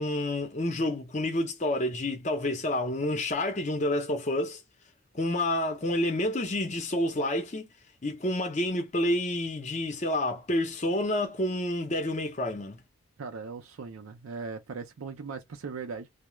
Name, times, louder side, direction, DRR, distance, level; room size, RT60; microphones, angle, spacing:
voice 1, 0.0-4.6 5.1-7.7 8.0-12.8, left 1 dB, 35° left, 0.6 m, -29 dB
voice 2, 13.2-16.1, right 4 dB, 90° right, 0.5 m, -39 dB
2.3 x 2.0 x 3.0 m
head